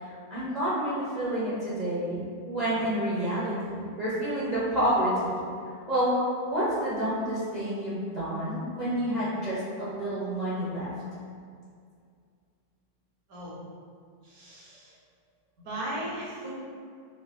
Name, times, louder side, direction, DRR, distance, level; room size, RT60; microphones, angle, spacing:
voice 1, 0.0-5.4 5.6-10.9, equal, 35° right, -12 dB, 0.7 m, -29 dB
voice 2, 14.2-14.9 15.6-16.5, right 1 dB, 65° right, -6 dB, 1.3 m, -36 dB
4.9 x 2.2 x 2.4 m, 2.2 s
omnidirectional pair, 1.8 m